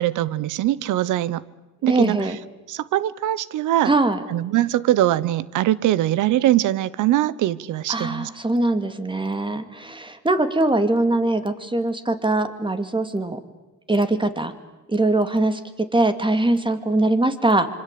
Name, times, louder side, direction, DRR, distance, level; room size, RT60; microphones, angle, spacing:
voice 1, 0.0-1.4 1.8-2.2 2.7-3.9 4.3-8.3, right 14 dB, 85° right, 20 dB, 1.0 m, -22 dB
voice 2, 1.8-2.4 3.8-4.2 7.9-13.4 13.9-14.5 14.9-17.7, right 2 dB, 15° right, 10 dB, 2.6 m, -22 dB
26.0 x 25.0 x 8.6 m, 1.1 s
cardioid pair, 90°, 30 cm